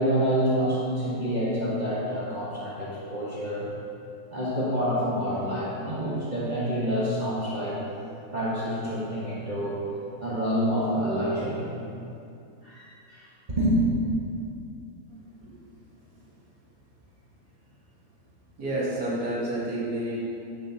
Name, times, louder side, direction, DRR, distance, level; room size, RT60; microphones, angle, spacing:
voice 1, 0.0-3.7 4.3-7.8 8.3-9.8 10.2-11.7 12.6-13.8, equal, 30° right, -9 dB, 1.2 m, -27 dB
voice 2, 18.6-20.3, right 1 dB, 80° right, -7 dB, 2.3 m, -29 dB
9.0 x 7.5 x 2.8 m, 2.6 s
omnidirectional pair, 1.7 m